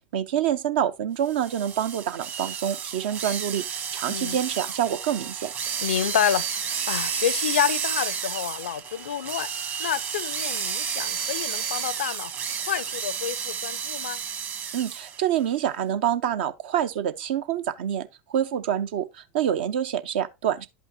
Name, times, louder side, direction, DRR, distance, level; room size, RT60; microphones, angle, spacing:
voice 1, 0.1-5.5 14.7-20.7, right 10 dB, 65° right, 0.7 m, -27 dB
sound 1, 1.3-15.2, right 7 dB, 35° right, 1.3 m, -31 dB
voice 2, 5.8-9.5 9.8-12.3 12.6-14.2, left 9 dB, 75° left, 0.4 m, -28 dB
11.0 x 5.5 x 2.7 m
figure-of-eight pair, 80°, 6 cm